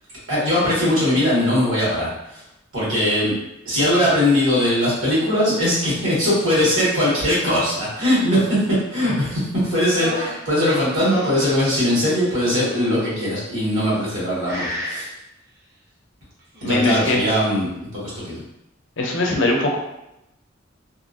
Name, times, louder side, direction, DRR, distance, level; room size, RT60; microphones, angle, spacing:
voice 1, 0.3-2.4 2.7-3.3 3.6-8.6 8.9-15.1 16.6-18.4, left 1 dB, 85° right, -8 dB, 1.5 m, -20 dB
sound 1, 9.8-11.6 12.4-13.2 13.9-14.2 14.5-15.1 16.4-17.1, equal, 55° right, 0.8 m, -34 dB
voice 2, 16.6-17.2 19.0-19.8, left 2 dB, 65° left, 0 dB, 0.5 m, -20 dB
2.8 x 2.5 x 2.4 m, 0.86 s
head